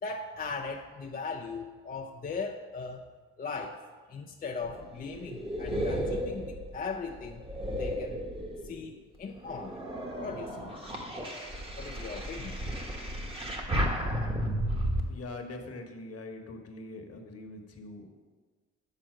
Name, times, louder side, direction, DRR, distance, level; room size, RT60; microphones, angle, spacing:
voice 1, 0.0-3.1 3.4-3.8 4.1-7.4 7.8-8.2 8.6-9.9 10.2-10.8 11.8-12.7, left 4 dB, 30° left, 2 dB, 0.5 m, -38 dB
sound 1, 4.6-8.9 9.4-15.0, equal, 20° right, 1.2 m, -33 dB
voice 2, 15.1-18.1, left 2 dB, 50° left, 4 dB, 1.2 m, -43 dB
7.8 x 4.3 x 6.3 m, 1.4 s
cardioid pair, 90°, 30 cm